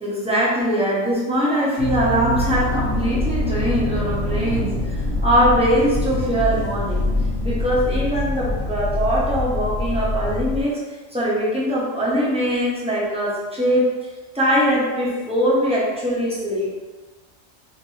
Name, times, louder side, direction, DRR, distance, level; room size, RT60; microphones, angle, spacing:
voice 1, 0.0-5.0 5.2-7.1 7.4-10.8 11.1-13.9 14.3-16.7, equal, 5° right, -8 dB, 0.6 m, -21 dB
sound 1, 1.8-10.6, left 1 dB, 35° left, 1.0 m, -24 dB
3.6 x 2.6 x 3.1 m, 1.3 s
omnidirectional pair, 1.4 m